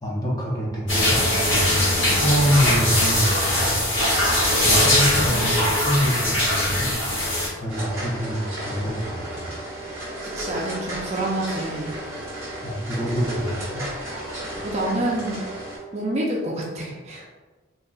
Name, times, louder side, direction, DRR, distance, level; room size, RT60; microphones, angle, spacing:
voice 1, 0.0-3.7 4.6-6.9 7.6-9.5 12.6-13.9, equal, 20° left, -4 dB, 0.6 m, -26 dB
sound 1, 0.9-7.5, left 1 dB, 55° left, 1.2 m, -21 dB
sound 2, 7.7-15.8, right 1 dB, 15° right, 1.2 m, -33 dB
voice 2, 10.2-11.9 14.6-15.5 15.9-17.3, right 1 dB, 30° right, -3 dB, 0.4 m, -27 dB
3.8 x 2.7 x 2.3 m, 1.3 s
head